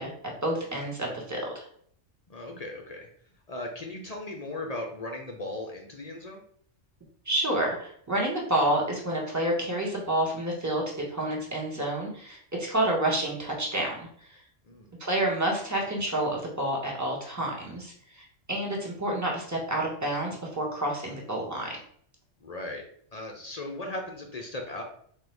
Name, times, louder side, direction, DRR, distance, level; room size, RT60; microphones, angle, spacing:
voice 1, 0.0-1.7 7.2-14.4 15.0-21.8, right 1 dB, 15° right, -2 dB, 1.1 m, -29 dB
voice 2, 2.3-3.1 3.5-6.4 14.7-14.9 22.4-22.8 23.1-24.8, left 2 dB, 45° left, 1 dB, 0.5 m, -37 dB
3.9 x 2.8 x 4.5 m, 0.63 s
omnidirectional pair, 1.3 m